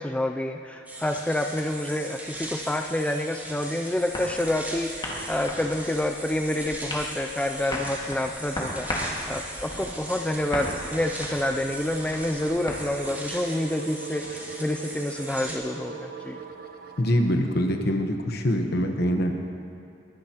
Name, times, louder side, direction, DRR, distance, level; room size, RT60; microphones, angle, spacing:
voice 1, 0.0-16.4, left 1 dB, 5° left, 4 dB, 0.4 m, -28 dB
sound 1, 0.9-15.6, right 1 dB, 10° right, 1.4 m, -39 dB
sound 2, 4.1-12.8, left 1 dB, 25° left, 1.9 m, -36 dB
sound 3, 10.4-17.4, right 6 dB, 55° right, 0.8 m, -41 dB
voice 2, 17.0-19.3, equal, 60° left, 4 dB, 1.0 m, -24 dB
21.0 x 10.5 x 2.9 m, 2.8 s
head